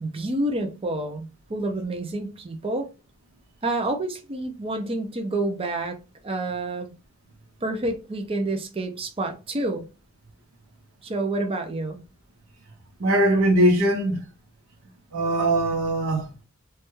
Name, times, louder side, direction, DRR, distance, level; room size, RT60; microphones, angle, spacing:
voice 1, 0.0-2.9 3.6-6.0 6.2-6.9 7.6-9.8 11.0-12.0, right 2 dB, 25° right, 0.5 m, -28 dB
voice 2, 13.0-14.3 15.1-16.4, right 1 dB, 90° right, 0.8 m, -21 dB
3.1 x 2.2 x 3.1 m
head